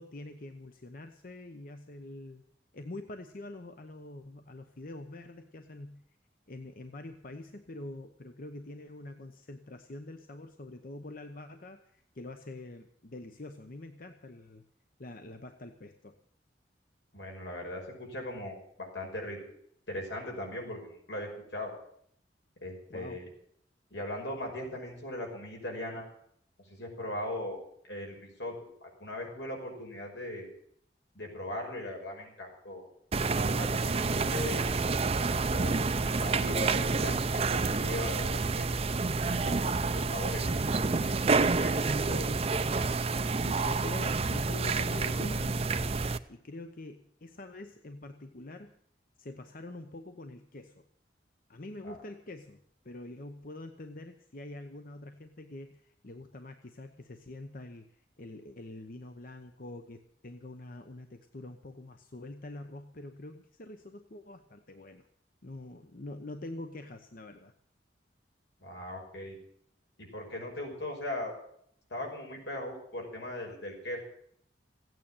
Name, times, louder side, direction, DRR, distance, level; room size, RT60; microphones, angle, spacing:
voice 1, 0.0-2.4 2.7-6.0 6.5-14.6 15.0-16.2 22.9-23.2 43.4-45.7 46.3-48.8 49.2-50.9 51.5-65.0 65.4-67.5, left 2 dB, 50° left, 7 dB, 0.9 m, -45 dB
voice 2, 17.1-19.4 19.9-21.7 22.6-23.3 23.9-26.1 26.7-27.6 27.9-28.5 29.0-30.5 31.1-32.9 33.4-34.7 35.1-38.7 39.3-41.7 42.1-42.3 51.8-51.9 68.6-69.4 70.0-71.3 71.9-74.0, left 1 dB, 85° left, 1 dB, 5.7 m, -39 dB
sound 1, 33.1-46.2, right 4 dB, 35° right, 0.6 m, -29 dB
15.5 x 9.3 x 8.9 m, 0.67 s
head